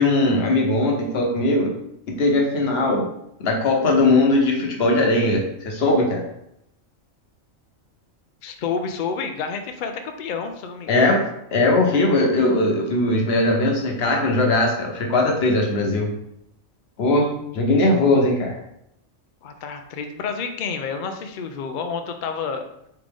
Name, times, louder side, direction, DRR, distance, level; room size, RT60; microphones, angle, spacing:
voice 1, 0.0-1.7 2.1-3.1 3.4-6.2 10.9-11.2 11.5-16.1 17.0-17.3 17.5-18.5, left 2 dB, 55° left, 0 dB, 1.0 m, -19 dB
voice 2, 8.4-11.2 19.4-22.6, left 5 dB, 80° left, 6 dB, 0.4 m, -29 dB
3.7 x 3.4 x 3.4 m, 0.78 s
omnidirectional pair, 1.4 m